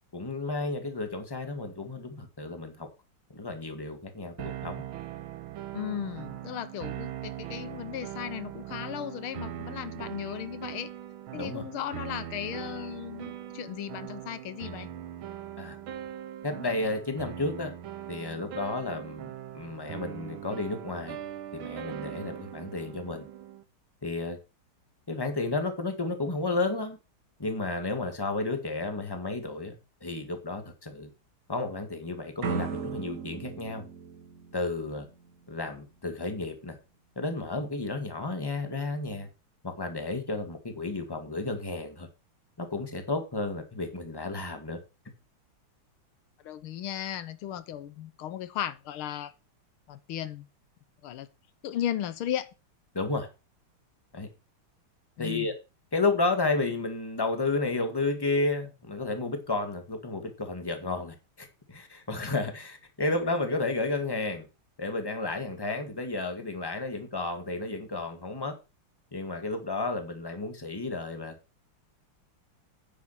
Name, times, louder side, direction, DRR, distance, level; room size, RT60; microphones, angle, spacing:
voice 1, 0.1-2.9 3.3-4.8 11.3-11.6 15.6-15.8 16.4-17.7 18.1-21.2 21.5-23.3 24.0-24.4 25.1-27.0 27.4-29.7 30.0-31.1 31.5-33.8 34.5-35.1 35.5-36.8 37.2-39.3 39.6-42.1 42.6-44.8 52.9-53.3 54.1-54.3 55.2-55.5 55.9-64.5 64.8-68.5 69.1-71.3, left 3 dB, 10° left, 1.8 m, -32 dB
sound 1, 4.4-23.6, right 11 dB, 75° right, 1.8 m, -40 dB
voice 2, 5.7-10.9 11.3-14.9 46.4-49.3 49.9-50.5 51.0-51.3 51.6-52.5 55.2-55.5, left 11 dB, 85° left, 1.7 m, -36 dB
sound 2, 32.4-35.3, right 5 dB, 45° right, 1.3 m, -36 dB
9.4 x 6.9 x 6.0 m
omnidirectional pair, 2.3 m